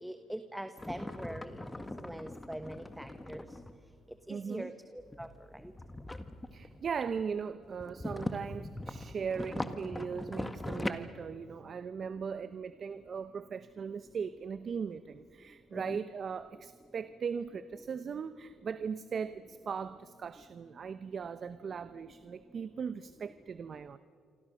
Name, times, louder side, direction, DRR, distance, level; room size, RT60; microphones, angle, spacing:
voice 1, 0.0-1.5 2.0-3.5 4.3-5.3 5.5-5.7 15.7-16.0, right 1 dB, 5° right, 9 dB, 1.3 m, -42 dB
sound 1, 0.8-3.8 5.0-7.3 7.6-10.9, left 1 dB, 15° left, 1.9 m, -41 dB
voice 2, 4.3-4.7 6.5-24.0, right 6 dB, 50° right, 12 dB, 0.9 m, -38 dB
28.5 x 25.0 x 6.6 m, 2.2 s
supercardioid pair, 65°, 0 cm